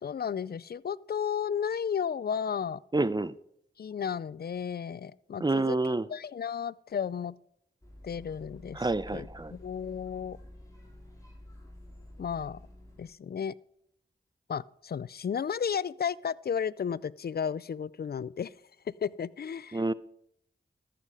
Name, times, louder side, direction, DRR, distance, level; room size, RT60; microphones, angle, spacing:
voice 1, 0.0-2.8 3.8-5.8 6.1-7.4 8.0-8.8 9.1-10.4 12.2-12.6 13.0-13.6 14.5-18.5 18.9-19.8, left 7 dB, 55° left, 22 dB, 0.4 m, -33 dB
voice 2, 2.9-3.3 5.4-6.1 8.7-9.6 19.7-19.9, right 2 dB, 20° right, 17 dB, 0.5 m, -28 dB
sound 1, 7.8-13.1, left 1 dB, 15° left, 4.0 m, -50 dB
13.5 x 7.7 x 4.8 m, 0.74 s
cardioid pair, 40°, 19 cm